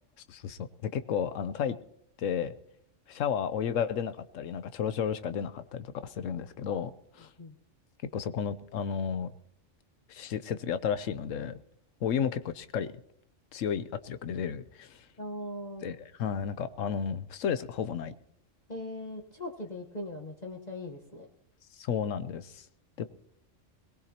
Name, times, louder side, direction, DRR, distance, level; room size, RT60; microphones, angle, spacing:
voice 1, 0.3-1.8 2.2-2.5 3.1-7.3 8.1-9.3 10.1-11.6 12.0-12.9 13.5-15.1 15.8-18.1 21.8-22.6 23.0-23.1, left 7 dB, 85° left, 13 dB, 1.1 m, -32 dB
voice 2, 15.2-16.0 18.7-21.3, left 1 dB, 35° left, 1 dB, 1.4 m, -40 dB
21.0 x 18.5 x 2.9 m, 0.71 s
omnidirectional pair, 1.3 m